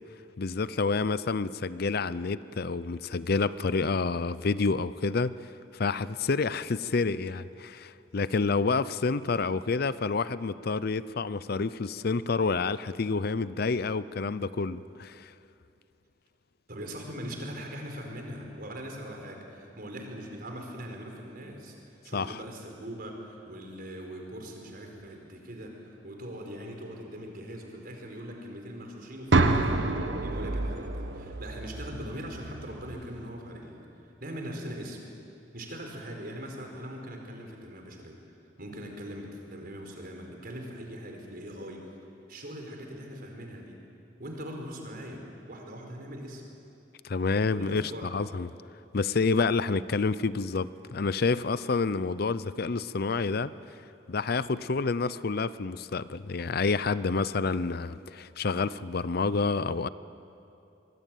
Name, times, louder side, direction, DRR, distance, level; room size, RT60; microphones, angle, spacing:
voice 1, 0.4-5.4 5.7-15.3 22.1-22.4 47.0-48.5 48.9-53.5 54.1-59.9, left 4 dB, 55° left, 0.6 m, -28 dB
voice 2, 16.7-21.7 22.0-29.8 30.2-33.9 34.2-35.0 35.5-38.2 38.6-41.9 42.3-43.8 44.2-46.4 47.5-48.1, equal, 55° right, 4.8 m, -41 dB
sound 1, 29.3-33.3, right 2 dB, 80° right, 1.4 m, -28 dB
25.0 x 22.0 x 9.2 m
head